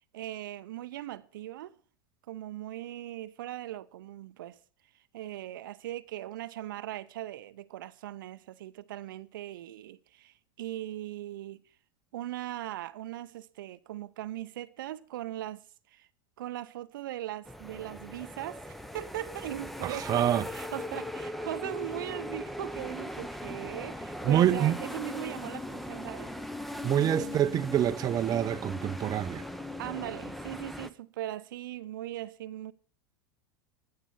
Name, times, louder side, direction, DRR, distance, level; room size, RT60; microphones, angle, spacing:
voice 1, 0.1-1.8 2.3-4.6 5.1-11.6 12.1-15.6 15.9-16.1 16.4-26.3 27.0-27.6 29.8-32.7, right 14 dB, 65° right, 0.7 m, -39 dB
sound 1, 17.5-30.9, left 1 dB, ahead, 0.9 m, -39 dB
voice 2, 19.8-20.5 24.2-24.8 26.8-29.4, right 10 dB, 30° right, 0.7 m, -26 dB
16.0 x 12.0 x 4.1 m
figure-of-eight pair, 85°, 12 cm